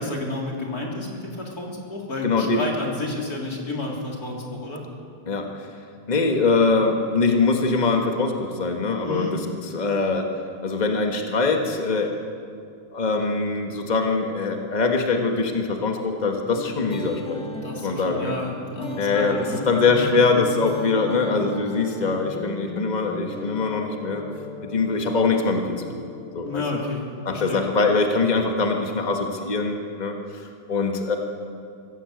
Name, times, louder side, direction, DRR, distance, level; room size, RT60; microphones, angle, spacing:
voice 1, 0.0-4.8 9.0-9.4 17.6-20.1 26.4-27.7, left 2 dB, 30° left, -1 dB, 3.6 m, -31 dB
voice 2, 2.2-2.6 5.3-5.5 6.1-9.4 9.7-10.3 10.6-12.3 12.9-17.4 17.7-18.3 19.0-24.2 24.6-26.0 26.3-26.6 27.2-31.2, left 4 dB, 60° left, 3 dB, 0.4 m, -23 dB
sound 1, 16.6-27.1, left 2 dB, ahead, 1.4 m, -36 dB
23.5 x 15.0 x 8.1 m, 2.4 s
omnidirectional pair, 3.6 m